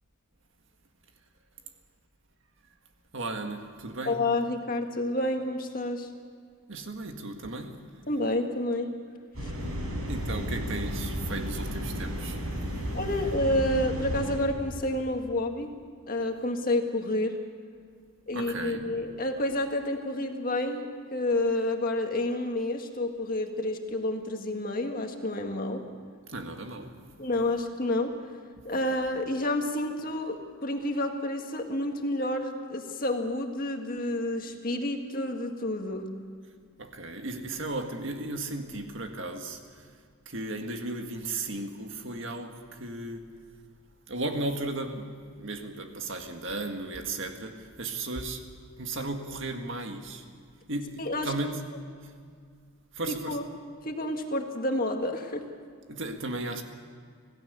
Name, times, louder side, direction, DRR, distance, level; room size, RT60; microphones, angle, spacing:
voice 1, 3.1-4.2 6.7-7.8 10.1-13.0 18.3-18.9 26.3-27.2 36.8-40.0 40.3-43.3 44.1-48.5 48.8-50.3 50.7-51.6 52.0-52.1 52.9-53.4 55.9-56.6, right 2 dB, 55° right, 4 dB, 1.9 m, -35 dB
voice 2, 4.1-6.1 8.1-8.9 9.4-9.5 12.9-15.7 16.1-17.4 18.3-20.9 21.1-25.8 27.2-28.1 28.6-36.1 51.0-51.3 53.3-53.4 53.9-55.5, left 1 dB, 40° left, 4 dB, 1.9 m, -29 dB
sound 1, 9.3-14.4, equal, 75° right, 5.9 m, -33 dB
26.0 x 17.0 x 6.9 m, 2.1 s
head